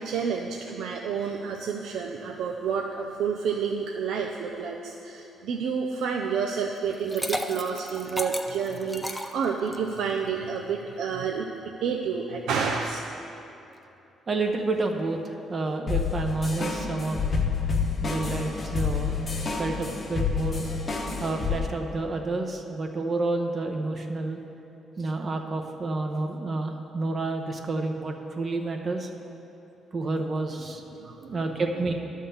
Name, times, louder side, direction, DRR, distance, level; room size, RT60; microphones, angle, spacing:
voice 1, 0.0-9.1 9.3-11.5 11.8-13.0 30.9-31.5, right 6 dB, 80° right, 1 dB, 0.5 m, -29 dB
Liquid, 6.9-10.0, equal, 5° left, 0.6 m, -33 dB
voice 2, 14.3-17.2 18.0-19.2 19.4-20.7 21.2-24.4 25.0-29.1 29.9-31.9, right 2 dB, 40° right, 3 dB, 0.7 m, -29 dB
sound 1, 15.9-21.6, left 5 dB, 35° left, 0.9 m, -28 dB
11.0 x 3.7 x 6.9 m, 2.9 s
cardioid pair, 90°, 0 cm